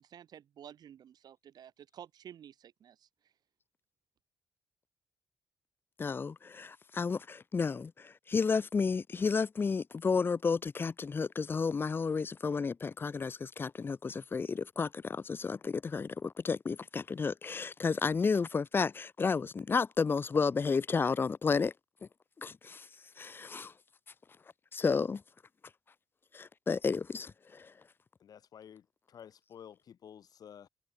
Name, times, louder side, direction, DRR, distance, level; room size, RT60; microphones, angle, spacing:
voice 1, 0.0-3.1, right 9 dB, 70° right, 1.2 m, -52 dB
voice 2, 6.0-21.7 22.4-22.8 23.2-23.7 24.7-25.2 26.3-27.7, left 5 dB, 30° left, 0.5 m, -32 dB
voice 3, 28.2-30.7, left 8 dB, 60° left, 1.0 m, -52 dB
cardioid pair, 100°, 7 cm